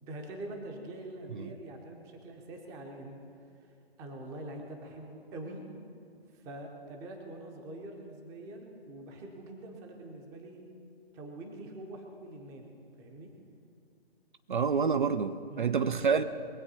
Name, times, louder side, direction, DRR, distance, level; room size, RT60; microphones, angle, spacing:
voice 1, 0.0-3.2 4.0-5.6 6.3-10.6 11.1-13.3 15.5-15.7, right 1 dB, 10° right, 3 dB, 0.8 m, -44 dB
voice 2, 14.5-16.2, right 6 dB, 50° right, 10 dB, 0.6 m, -28 dB
21.5 x 7.9 x 5.5 m, 2.4 s
figure-of-eight pair, 140°, 32 cm